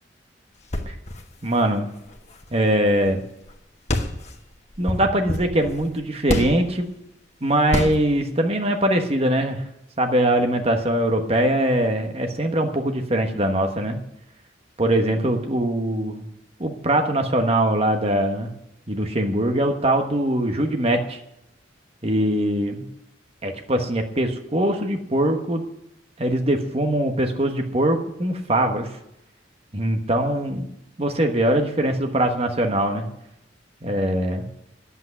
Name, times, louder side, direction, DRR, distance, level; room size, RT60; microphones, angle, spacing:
sound 1, 0.6-3.2 3.4-3.6 3.9-6.7 7.7-8.2, left 1 dB, 35° left, 1.4 m, -28 dB
voice 1, 1.4-1.9 2.5-3.2 4.8-6.9 7.4-9.6 10.0-14.0 14.8-16.3 16.6-18.5 18.9-21.2 22.0-22.8 23.4-25.6 26.2-28.9 29.7-30.6 31.0-33.1 33.8-34.5, right 1 dB, 35° right, 4 dB, 1.3 m, -22 dB
10.5 x 8.4 x 9.6 m, 0.83 s
head